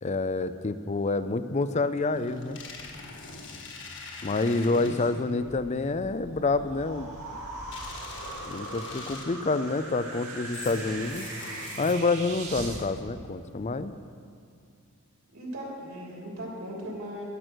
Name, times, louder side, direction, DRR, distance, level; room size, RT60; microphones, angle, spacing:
voice 1, 0.0-2.6 4.2-7.1 8.5-11.3 11.8-13.9, left 3 dB, 30° left, 13 dB, 0.4 m, -28 dB
sound 1, 2.2-5.3 7.7-9.5 10.5-12.3, left 3 dB, 55° left, 1.7 m, -42 dB
voice 2, 4.7-5.3 12.6-12.7 15.3-17.2, equal, 65° right, -2 dB, 3.1 m, -39 dB
sound 2, 5.4-12.8, right 2 dB, 90° right, 2.5 m, -40 dB
12.5 x 10.5 x 6.3 m, 2.3 s
head